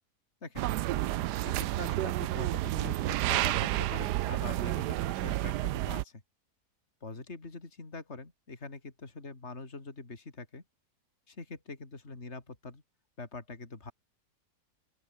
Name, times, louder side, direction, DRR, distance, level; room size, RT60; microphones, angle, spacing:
sound 1, 0.6-6.0, right 15 dB, 85° right, 1.2 m, -30 dB
voice 1, 1.4-6.2 7.0-10.6 11.3-12.8 13.2-13.9, left 3 dB, 40° left, 3.6 m, -44 dB
open air
omnidirectional pair, 1.7 m